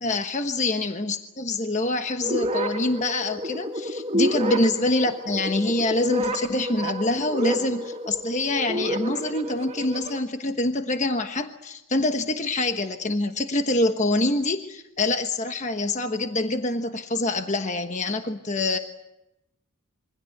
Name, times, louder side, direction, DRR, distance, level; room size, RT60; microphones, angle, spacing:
voice 1, 0.0-18.8, left 2 dB, 35° left, 6 dB, 1.2 m, -25 dB
sound 1, 2.2-10.2, equal, 30° right, 2.6 m, -30 dB
26.5 x 24.0 x 8.0 m, 0.92 s
head